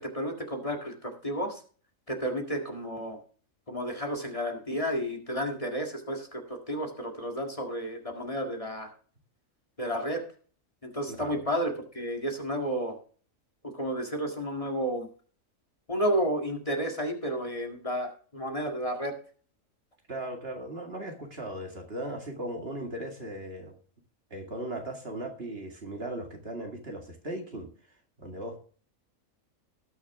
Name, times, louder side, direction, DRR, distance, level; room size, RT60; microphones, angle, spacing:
voice 1, 0.0-1.6 2.1-3.2 3.7-8.9 9.8-10.2 10.8-13.0 13.6-15.1 15.9-19.1, equal, 25° left, 2 dB, 1.8 m, -31 dB
voice 2, 11.1-11.4 20.1-23.7 24.3-27.7 28.2-28.6, right 1 dB, 50° right, 2 dB, 2.2 m, -37 dB
19.0 x 6.3 x 3.6 m, 0.42 s
omnidirectional pair, 1.4 m